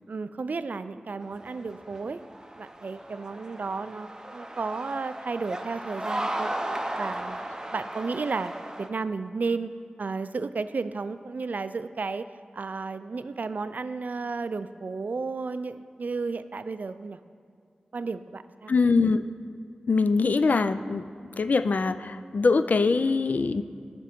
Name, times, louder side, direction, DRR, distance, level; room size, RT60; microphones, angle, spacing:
voice 1, 0.1-2.2 2.6-6.5 7.0-7.4 7.7-9.7 10.0-12.3 12.5-17.2 17.9-18.7, right 4 dB, 65° right, 12 dB, 0.3 m, -33 dB
sound 1, 1.2-8.9, right 1 dB, 20° right, 0.7 m, -36 dB
voice 2, 18.7-19.2 19.9-21.0 21.4-23.6, left 4 dB, 65° left, 12 dB, 0.3 m, -23 dB
12.0 x 5.2 x 4.5 m, 2.3 s
wide cardioid pair, 60°, 3 cm